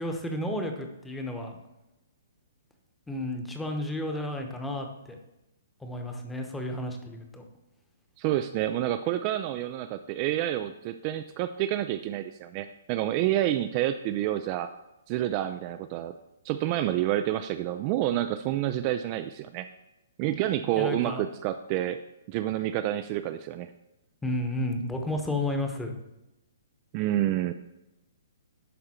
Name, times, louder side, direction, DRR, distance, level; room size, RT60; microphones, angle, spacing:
voice 1, 0.0-1.6 3.1-5.2 5.8-7.4 20.8-21.2 24.2-25.9, left 1 dB, 5° left, 4 dB, 1.0 m, -32 dB
voice 2, 8.2-14.7 15.1-16.1 16.4-19.7 20.2-22.0 22.3-23.7 26.9-27.5, right 13 dB, 35° right, 9 dB, 0.3 m, -28 dB
11.0 x 3.7 x 4.3 m, 0.94 s
hypercardioid pair, 130°, 0 cm